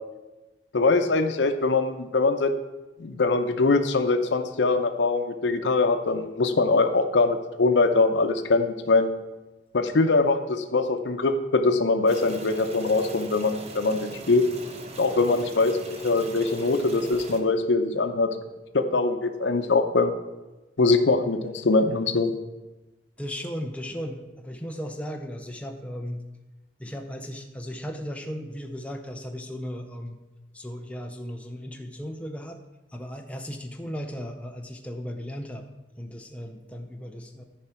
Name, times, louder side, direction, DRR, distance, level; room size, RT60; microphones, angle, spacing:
voice 1, 0.7-2.5 3.0-9.1 9.7-14.4 15.0-15.8 16.0-18.3 18.7-20.1 20.8-22.3, left 3 dB, 90° left, 7 dB, 0.7 m, -22 dB
sound 1, 12.1-17.4, right 2 dB, 35° right, 0.9 m, -41 dB
voice 2, 23.2-26.2 26.8-30.2 30.5-32.6 32.9-35.6 36.0-37.4, equal, 5° left, 3 dB, 0.6 m, -36 dB
13.5 x 5.0 x 4.3 m, 1.1 s
head